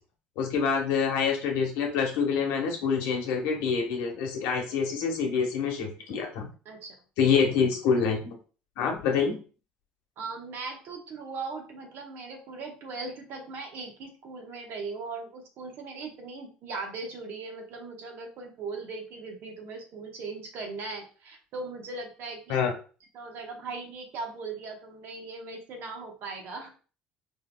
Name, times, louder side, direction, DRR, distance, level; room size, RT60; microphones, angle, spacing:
voice 1, 0.4-6.5 7.2-8.3 8.8-9.3 22.5-22.7, left 6 dB, 75° left, 2 dB, 1.0 m, -26 dB
voice 2, 10.2-22.7 23.1-26.7, right 3 dB, 65° right, 3 dB, 1.0 m, -39 dB
4.5 x 2.7 x 2.2 m, 0.37 s
supercardioid pair, 80°, 4 cm